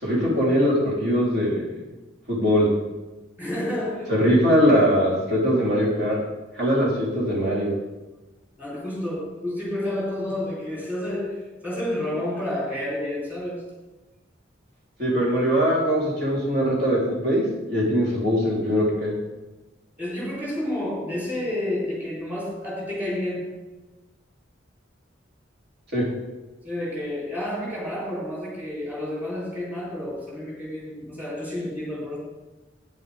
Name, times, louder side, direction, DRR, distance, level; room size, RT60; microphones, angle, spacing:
voice 1, 0.0-1.7 2.3-2.7 4.1-6.2 6.5-7.8 15.0-19.1 25.9-26.1, equal, 60° right, -5 dB, 3.7 m, -21 dB
voice 2, 3.4-4.2 8.6-13.7 20.0-23.6 26.6-32.2, left 1 dB, 10° right, -6 dB, 3.7 m, -30 dB
11.0 x 9.3 x 3.6 m, 1.1 s
head